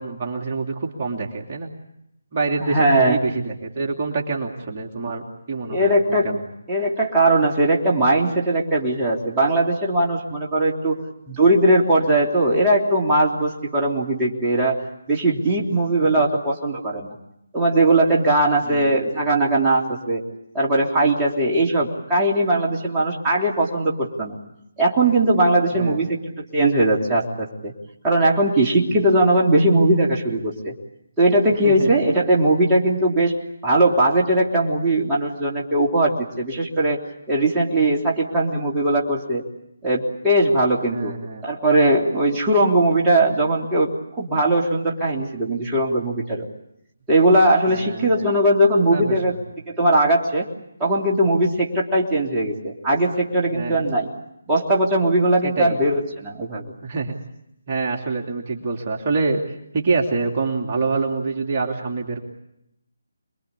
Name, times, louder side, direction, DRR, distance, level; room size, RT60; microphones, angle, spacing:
voice 1, 0.0-1.7 2.3-6.4 16.1-16.2 18.6-19.0 25.7-26.0 28.9-29.2 31.6-31.9 40.9-41.5 47.7-48.3 48.9-49.2 53.5-53.8 55.4-55.8 56.8-57.2 57.7-59.4 59.7-62.2, right 4 dB, 35° right, 0 dB, 2.9 m, -26 dB
voice 2, 2.6-3.2 5.6-6.3 6.7-11.0 11.3-14.8 15.1-17.1 17.5-20.2 20.5-24.4 24.8-27.7 28.0-30.7 31.2-33.3 33.6-37.0 37.3-39.4 39.8-41.1 41.4-46.5 47.1-49.3 49.7-50.5 50.8-54.1 54.5-56.7, right 1 dB, 10° right, -5 dB, 3.2 m, -19 dB
27.5 x 22.0 x 8.4 m, 0.80 s
figure-of-eight pair, 155°, 0 cm